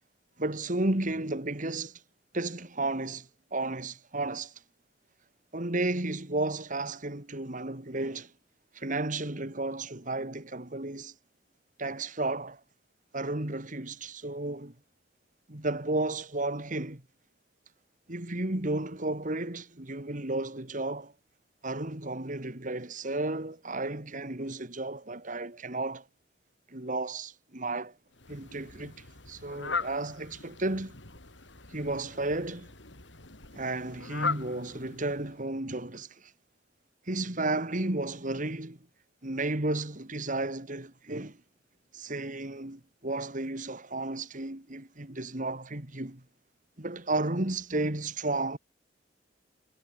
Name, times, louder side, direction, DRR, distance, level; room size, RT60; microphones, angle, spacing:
voice 1, 0.4-2.0 2.3-4.6 5.5-8.3 8.7-11.1 11.8-12.6 13.1-14.7 15.5-17.0 18.1-21.1 21.6-26.1 26.7-28.0 28.3-28.9 29.3-31.0 31.7-32.7 33.5-36.3 37.1-38.8 39.2-41.4 41.9-46.2 46.8-48.6, right 2 dB, 45° right, 2.5 m, -33 dB
Fowl, 28.1-35.5, left 4 dB, 90° left, 4.9 m, -39 dB
head